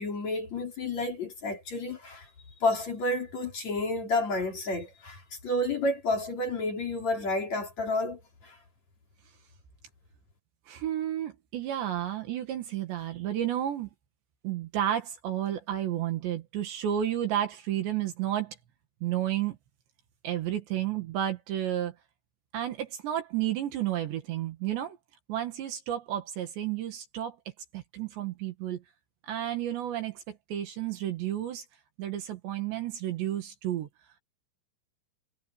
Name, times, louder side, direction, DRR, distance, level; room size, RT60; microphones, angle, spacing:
voice 1, 0.0-2.3 2.6-8.6, left 2 dB, 35° left, 4.6 m, -30 dB
voice 2, 10.7-13.9 14.4-18.6 19.0-19.6 20.2-21.9 22.5-25.0 25.3-27.4 27.7-28.8 29.3-31.6 32.0-33.9, right 11 dB, 65° right, 3.8 m, -31 dB
omnidirectional pair, 5.8 m